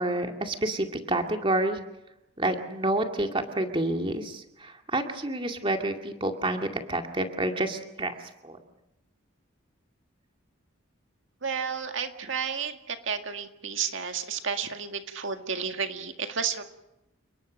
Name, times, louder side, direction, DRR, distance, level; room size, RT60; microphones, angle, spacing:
voice 1, 0.0-1.8 2.4-8.2 8.4-8.6, right 1 dB, 25° right, 4 dB, 2.2 m, -29 dB
voice 2, 11.4-16.6, right 6 dB, 70° right, 6 dB, 1.9 m, -32 dB
30.0 x 20.0 x 6.4 m, 0.90 s
head